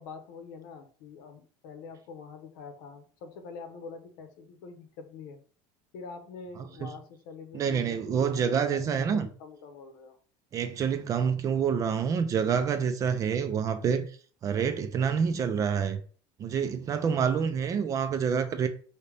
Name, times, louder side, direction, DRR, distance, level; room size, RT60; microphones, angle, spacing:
voice 1, 0.0-5.4 5.9-10.2 11.5-11.8, left 5 dB, 85° left, 0.9 m, -45 dB
voice 2, 7.5-9.3 10.5-14.1 14.4-16.0 16.4-18.7, right 7 dB, 30° right, 0.5 m, -27 dB
4.9 x 2.8 x 3.4 m
cardioid pair, 150°, 11 cm